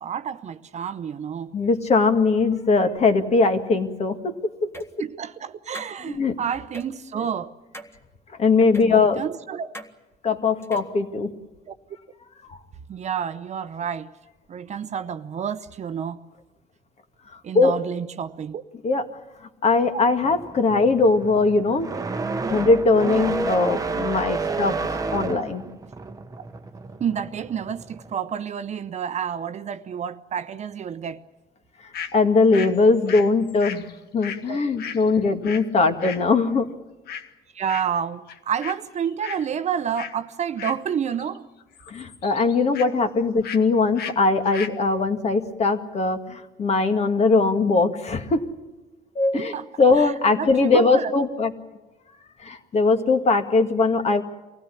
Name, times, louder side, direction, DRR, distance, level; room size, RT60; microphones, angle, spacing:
voice 1, 0.0-1.5 5.0-7.5 8.9-9.8 11.7-11.8 12.9-14.1 14.5-16.2 17.4-18.6 20.7-20.9 25.0-25.4 26.4-26.5 27.0-31.2 34.5-34.6 35.1-35.2 37.5-41.5 49.3-51.1, right 8 dB, 45° right, 0.8 m, -30 dB
voice 2, 1.5-4.3 4.6-4.7 6.0-6.4 8.4-9.2 10.2-11.3 17.5-17.7 18.8-19.0 19.6-21.9 22.5-24.8 25.1-25.6 32.1-33.9 34.1-36.7 41.9-48.4 49.2-49.5 49.8-51.5 52.4-54.2, left 3 dB, 40° left, 2.0 m, -20 dB
sound 1, 4.7-4.9 5.7-5.9 6.7-6.9 7.7-8.0 8.7-8.9 9.7-9.9 10.6-10.9, equal, 15° left, 1.8 m, -38 dB
sound 2, 20.2-28.1, right 4 dB, 20° right, 1.1 m, -30 dB
sound 3, 31.9-32.1 32.5-35.7 36.0-36.2 37.1-37.3 37.7-38.0 38.3-38.8 39.0-39.5 39.9-40.2 40.6-41.4 41.6-42.9 43.4-43.7 43.9-44.1 44.4-44.8, left 8 dB, 70° left, 1.4 m, -36 dB
24.0 x 16.5 x 9.8 m
cardioid pair, 110°, 17 cm